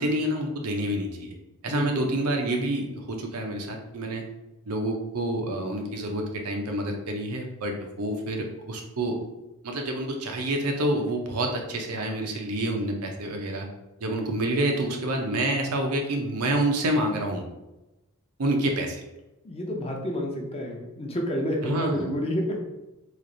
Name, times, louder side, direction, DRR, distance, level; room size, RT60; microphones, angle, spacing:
voice 1, 0.0-1.3 1.6-4.2 4.7-9.2 9.6-13.7 14.0-17.5 18.4-19.0 21.6-22.1, right 1 dB, 75° right, 3 dB, 0.7 m, -28 dB
voice 2, 1.7-2.0 19.4-22.6, equal, 25° left, 1 dB, 0.6 m, -29 dB
3.2 x 2.5 x 3.8 m, 0.99 s
head